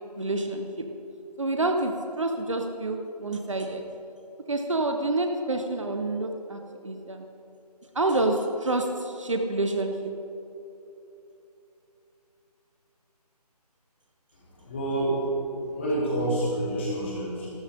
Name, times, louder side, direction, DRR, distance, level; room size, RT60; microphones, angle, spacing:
voice 1, 0.2-0.9 1.4-3.8 4.5-7.2 7.9-10.1, right 2 dB, 50° right, 4 dB, 1.4 m, -28 dB
voice 2, 14.4-15.2 15.6-17.5, right 1 dB, 20° left, -8 dB, 4.2 m, -28 dB
29.0 x 13.0 x 3.8 m, 2.9 s
figure-of-eight pair, 175°, 21 cm